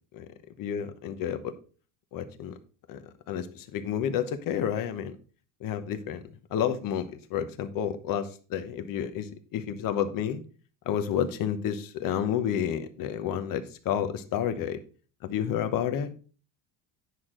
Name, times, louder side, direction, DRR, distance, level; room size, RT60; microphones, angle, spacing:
voice 1, 0.6-1.5 2.1-2.6 2.9-5.2 5.6-6.2 6.5-10.4 10.9-14.8 15.2-16.1, left 9 dB, 40° left, 10 dB, 1.0 m, -30 dB
9.5 x 6.4 x 3.8 m, 0.39 s
cardioid pair, 155°, 50 cm